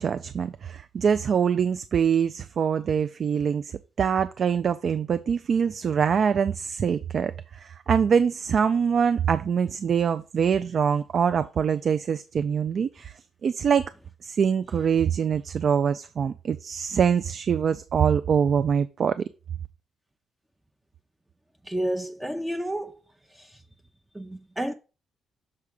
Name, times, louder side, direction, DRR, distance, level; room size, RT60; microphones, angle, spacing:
voice 1, 0.0-3.7 4.0-13.1 13.4-13.9 14.2-19.2, right 7 dB, 55° right, 0.3 m, -24 dB
voice 2, 21.7-23.0 24.1-24.7, right 1 dB, 10° right, 0.6 m, -30 dB
6.7 x 3.5 x 4.9 m
cardioid pair, 90°, 0 cm